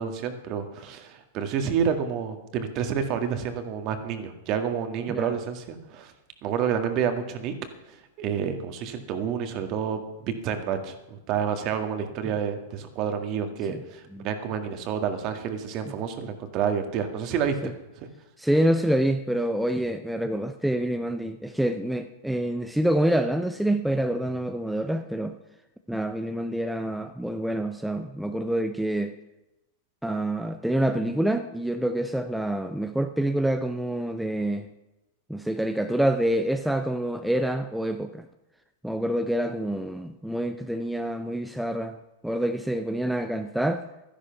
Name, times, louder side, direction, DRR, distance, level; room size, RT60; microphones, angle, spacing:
voice 1, 0.0-6.1 6.4-7.6 7.9-17.7 18.0-18.1, right 7 dB, 45° right, 7 dB, 1.8 m, -29 dB
voice 2, 18.4-25.4 25.9-29.1 30.0-34.7 35.3-38.3 38.8-42.0 42.2-43.8, right 1 dB, ahead, 7 dB, 0.7 m, -27 dB
12.5 x 11.0 x 5.9 m, 0.97 s
hypercardioid pair, 105°, 0 cm